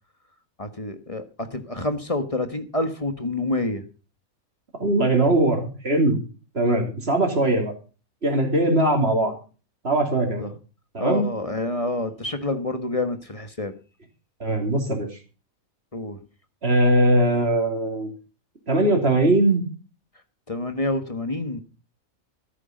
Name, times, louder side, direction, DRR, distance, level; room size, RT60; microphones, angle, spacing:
voice 1, 0.6-3.8 10.4-10.5 11.0-13.7 15.9-16.2 20.5-21.6, left 2 dB, 25° left, 9 dB, 1.4 m, -28 dB
voice 2, 4.8-6.2 6.5-7.7 8.2-9.3 9.8-10.5 10.9-11.3 14.4-15.1 16.6-18.1 18.7-19.6, right 1 dB, 45° right, 3 dB, 3.3 m, -20 dB
14.0 x 9.9 x 5.2 m, 0.36 s
omnidirectional pair, 1.5 m